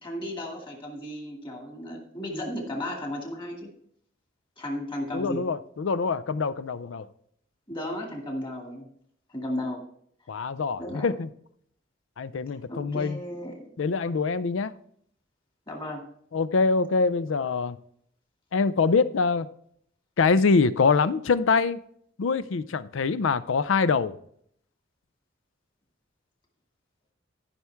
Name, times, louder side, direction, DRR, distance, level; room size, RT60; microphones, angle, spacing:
voice 1, 0.0-3.7 4.6-5.4 7.7-8.9 9.3-9.8 10.8-11.1 12.7-13.7 15.7-16.0, left 1 dB, 25° left, 2.2 m, -34 dB
voice 2, 5.1-7.1 10.3-11.3 12.2-13.2 13.8-14.7 16.3-17.8 18.5-19.5 20.2-21.8 22.2-24.2, left 4 dB, 85° left, 0.5 m, -24 dB
14.0 x 5.8 x 3.4 m
head